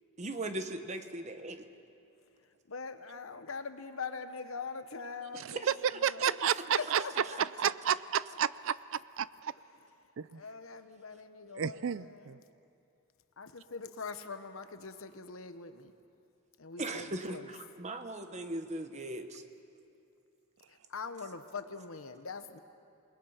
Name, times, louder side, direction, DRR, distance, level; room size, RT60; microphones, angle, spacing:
voice 1, 0.2-1.6 5.3-6.3 7.3-7.4 16.8-19.4, right 2 dB, 35° right, 7 dB, 1.1 m, -39 dB
voice 2, 2.7-6.3 6.7-7.4 10.3-12.4 13.4-15.9 16.6-17.5 20.7-22.6, left 4 dB, 70° left, 9 dB, 1.1 m, -43 dB
voice 3, 5.4-7.0 7.4-9.5 10.2-10.4 11.6-12.4, right 8 dB, 65° right, 17 dB, 0.4 m, -32 dB
28.0 x 20.5 x 5.7 m, 2.6 s
head